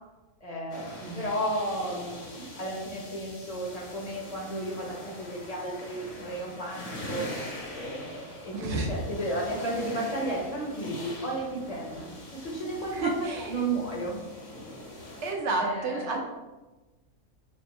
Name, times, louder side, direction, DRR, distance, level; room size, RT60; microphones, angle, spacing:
voice 1, 0.4-7.2 7.7-14.2 15.6-16.2, right 1 dB, 30° left, -3 dB, 0.8 m, -33 dB
sound 1, 0.7-15.3, left 1 dB, 60° left, 1.5 m, -42 dB
voice 2, 8.5-8.9 12.9-13.6 15.2-16.2, right 3 dB, 65° right, 2 dB, 0.8 m, -30 dB
3.5 x 3.2 x 4.1 m, 1.1 s
omnidirectional pair, 1.6 m